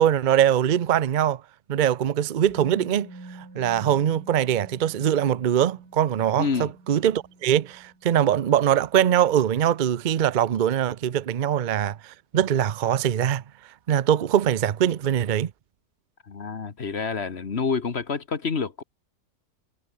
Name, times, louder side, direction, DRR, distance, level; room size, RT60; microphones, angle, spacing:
voice 1, 0.0-1.4 1.7-13.4 13.9-15.5, right 10 dB, 80° right, 0.4 m, -22 dB
Musical instrument, 2.5-10.4 10.7-10.8, right 2 dB, 65° right, 5.8 m, -48 dB
voice 2, 6.4-6.7 16.3-18.8, left 5 dB, 40° left, 1.6 m, -28 dB
omnidirectional pair, 1.8 m